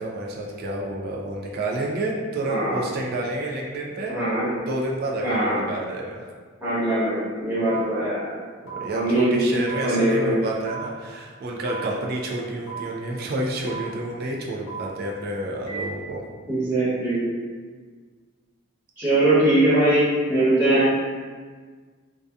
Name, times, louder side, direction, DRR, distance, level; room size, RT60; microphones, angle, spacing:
voice 1, 0.0-4.2 4.7-6.3 8.7-16.2, right 1 dB, 50° right, -2 dB, 0.3 m, -29 dB
voice 2, 2.4-2.8 4.1-4.5 5.2-5.6 6.6-8.2 8.9-9.4 9.8-10.4 16.5-17.2 19.0-20.9, right 1 dB, 10° right, -13 dB, 1.0 m, -21 dB
sound 1, 7.7-7.8 8.7-8.8 9.7-9.8 10.7-10.8 11.7-11.8 12.7-12.8 13.7-13.8 14.7-14.8 15.7-15.8, right 6 dB, 65° left, 0.7 m, -35 dB
2.6 x 2.2 x 2.3 m, 1.5 s
head